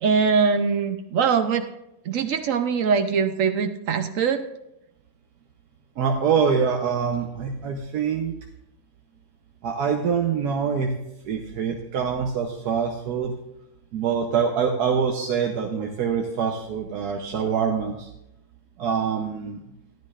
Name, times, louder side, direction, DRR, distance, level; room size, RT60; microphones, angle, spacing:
voice 1, 0.0-1.7 2.1-4.4, right 6 dB, 65° right, 8 dB, 1.0 m, -22 dB
voice 2, 6.0-8.4 9.6-10.9 11.2-13.3 13.9-18.1 18.8-19.6, right 6 dB, 85° right, 2 dB, 1.4 m, -25 dB
12.5 x 11.5 x 2.4 m, 0.85 s
omnidirectional pair, 1.6 m